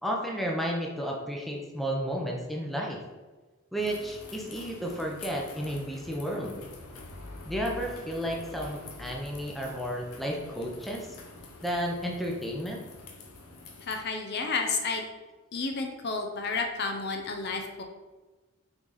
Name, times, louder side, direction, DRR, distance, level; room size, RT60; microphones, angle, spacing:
voice 1, 0.0-3.0 3.7-6.6 7.4-11.2 11.6-12.8, equal, ahead, -1 dB, 0.7 m, -32 dB
sound 1, 3.8-14.0, left 3 dB, 80° left, 0.9 m, -46 dB
voice 2, 13.8-15.1 15.5-17.8, left 4 dB, 50° left, 3 dB, 0.7 m, -31 dB
5.9 x 4.0 x 4.1 m, 1.2 s
head